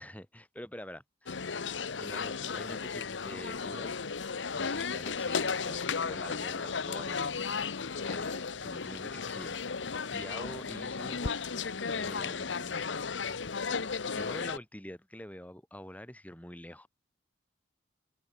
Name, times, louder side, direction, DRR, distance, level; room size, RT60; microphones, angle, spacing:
voice 1, 0.0-1.4 2.0-3.9 4.5-7.6 8.1-13.4 14.1-16.9, equal, 10° left, 6.4 m, -46 dB
sound 1, 1.3-14.6, left 5 dB, 85° left, 1.0 m, -34 dB
open air
head